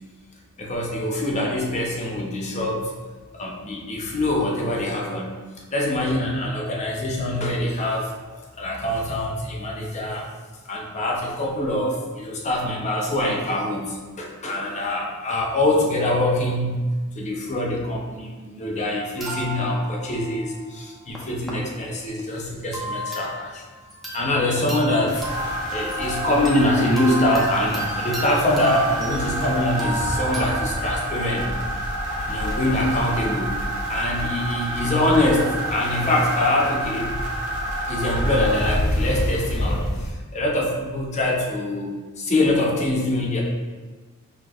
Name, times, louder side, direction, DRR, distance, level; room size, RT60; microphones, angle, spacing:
voice 1, 0.6-2.8 3.3-5.3 5.7-8.1 8.6-10.3 10.7-16.8 17.1-23.6 24.1-25.2 25.7-31.5 32.3-33.5 33.9-37.1 37.9-43.4, left 1 dB, 35° left, -1 dB, 0.7 m, -24 dB
sound 1, 19.2-21.5 22.0-22.2 22.7-24.4 24.7-30.6, equal, ahead, 0.7 m, -33 dB
sound 2, 25.1-40.1, equal, 70° left, 0.9 m, -31 dB
sound 3, 25.2-38.8, right 1 dB, 90° right, 1.0 m, -29 dB
6.0 x 3.1 x 2.4 m, 1.3 s
head